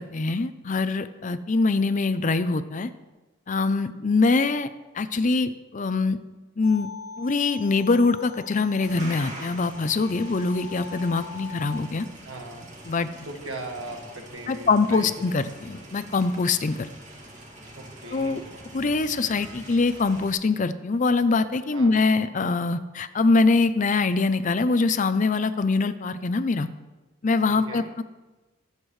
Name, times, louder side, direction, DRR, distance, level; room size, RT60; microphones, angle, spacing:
voice 1, 0.0-2.9 3.5-4.7 4.9-6.2 6.6-6.9 7.2-12.1 12.9-13.1 14.5-16.9 18.1-18.4 18.7-26.7 27.2-28.0, left 3 dB, 35° left, 12 dB, 0.5 m, -23 dB
sound 1, 6.6-11.7, left 5 dB, 75° left, 1.7 m, -43 dB
sound 2, 8.8-20.3, right 1 dB, 35° right, 2.2 m, -44 dB
voice 2, 12.2-12.7 13.2-15.3 17.7-18.5 21.7-21.9 27.5-27.8, right 2 dB, 70° right, 3 dB, 1.7 m, -39 dB
22.0 x 8.2 x 3.2 m, 1.2 s
head